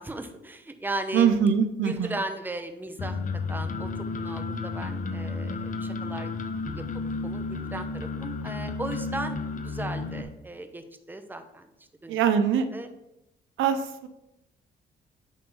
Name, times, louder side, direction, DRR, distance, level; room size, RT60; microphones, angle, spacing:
voice 1, 0.0-1.6 1.8-3.2 3.5-3.9 4.2-6.3 6.7-6.9 7.2-9.4 9.6-11.7 12.0-12.2 12.7-12.9, right 2 dB, 10° right, 7 dB, 0.8 m, -36 dB
voice 2, 1.1-2.1 12.1-12.6 13.6-14.1, right 7 dB, 80° right, 9 dB, 0.7 m, -23 dB
sound 1, 3.0-10.2, left 4 dB, 40° left, 0.8 m, -32 dB
9.2 x 3.5 x 5.5 m, 0.89 s
cardioid pair, 90°, 20 cm